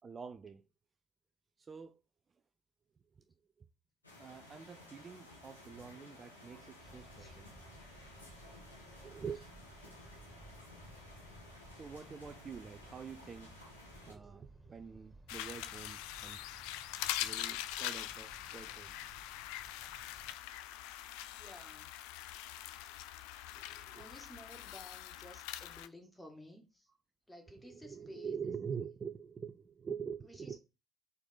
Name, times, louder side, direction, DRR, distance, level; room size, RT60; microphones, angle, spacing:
voice 1, 0.0-0.6 1.6-2.0 4.2-7.5 9.0-9.5 9.8-10.3 11.8-13.5 14.0-16.5 17.2-18.9 23.5-24.1 27.6-30.6, right 6 dB, 35° right, 0.5 m, -45 dB
sound 1, 4.0-14.1, left 2 dB, 90° left, 1.4 m, -55 dB
sound 2, 6.8-20.3, right 2 dB, 5° right, 2.2 m, -58 dB
sound 3, 15.3-25.9, left 13 dB, 65° left, 0.4 m, -43 dB
voice 2, 21.4-21.9 24.0-26.9 27.3-28.3 30.2-30.6, left 1 dB, 10° left, 2.1 m, -54 dB
4.5 x 4.1 x 5.5 m
figure-of-eight pair, 50°, 0 cm